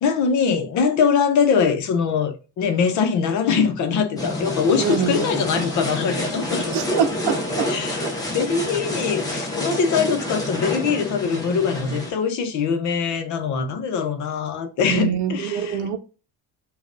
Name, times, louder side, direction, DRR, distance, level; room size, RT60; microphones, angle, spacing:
voice 1, 0.0-6.8 7.7-15.8, left 6 dB, 50° left, 0.7 m, -22 dB
sound 1, 4.2-12.1, left 1 dB, 10° left, 0.5 m, -28 dB
voice 2, 4.8-5.2 6.7-7.8 14.9-16.0, right 8 dB, 80° right, 0.7 m, -24 dB
5.1 x 2.3 x 2.6 m
cardioid pair, 180°, 39 cm